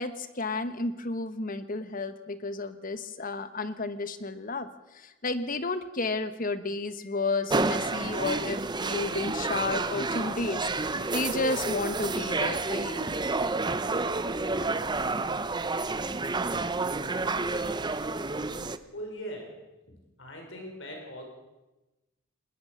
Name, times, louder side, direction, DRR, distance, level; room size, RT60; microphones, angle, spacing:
voice 1, 0.0-4.7 4.9-13.1, left 3 dB, 45° left, 11 dB, 1.3 m, -32 dB
sound 1, 7.5-18.8, right 3 dB, 20° right, 0.7 m, -30 dB
voice 2, 18.9-19.6 19.9-21.2, equal, 65° left, 2 dB, 5.8 m, -40 dB
20.5 x 20.0 x 6.6 m, 1.1 s
head